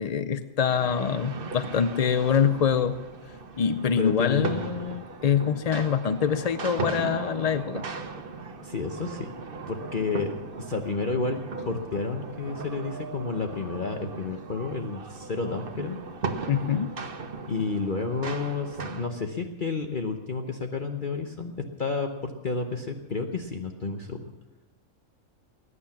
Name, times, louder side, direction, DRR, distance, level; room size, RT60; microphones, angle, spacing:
voice 1, 0.0-3.0 3.6-7.8 16.5-16.9, left 7 dB, 55° left, 12 dB, 0.4 m, -25 dB
sound 1, 0.6-19.1, right 4 dB, 45° right, 1.2 m, -38 dB
voice 2, 4.0-4.6 8.6-9.3 9.7-10.3 10.6-11.4 11.7-16.0 17.5-24.3, left 4 dB, 40° left, 4 dB, 1.0 m, -30 dB
20.0 x 9.7 x 7.3 m, 1.0 s
omnidirectional pair, 1.4 m